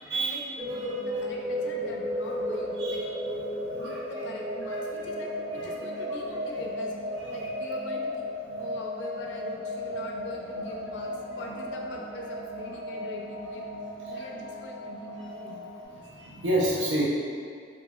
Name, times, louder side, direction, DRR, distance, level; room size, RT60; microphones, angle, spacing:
voice 1, 0.1-3.0 3.8-7.0 7.3-8.3 8.6-13.7 14.1-16.3, left 1 dB, 70° left, 0 dB, 0.3 m, -42 dB
sound 1, 0.6-15.8, equal, 40° right, 0.7 m, -34 dB
voice 2, 3.7-4.0 5.6-5.7 14.1-14.2 15.9-17.1, right 1 dB, 85° right, -5 dB, 0.4 m, -28 dB
2.8 x 2.5 x 2.2 m, 2.3 s
head